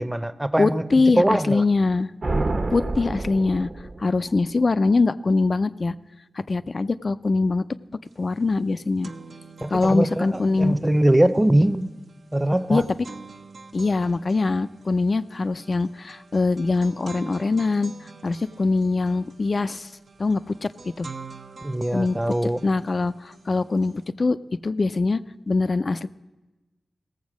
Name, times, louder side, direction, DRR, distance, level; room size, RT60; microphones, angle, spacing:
voice 1, 0.0-0.8 1.2-1.6 9.6-11.9 12.3-12.8 21.6-22.6, right 1 dB, 15° right, 13 dB, 0.7 m, -21 dB
voice 2, 0.6-2.1 2.7-3.7 4.0-5.9 6.5-7.6 8.2-9.1 9.7-10.8 12.7-12.8 13.7-17.9 18.2-19.9 20.2-20.7 21.0-21.1 21.9-22.2 22.6-24.4 24.6-25.2 25.5-26.1, left 3 dB, 55° left, 13 dB, 0.4 m, -22 dB
sound 1, 2.2-4.2, right 2 dB, 50° right, 1.0 m, -28 dB
sound 2, 8.1-8.2 8.5-24.0, right 4 dB, 70° right, 0.8 m, -46 dB
16.5 x 7.2 x 6.2 m, 1.1 s
cardioid pair, 45°, 0 cm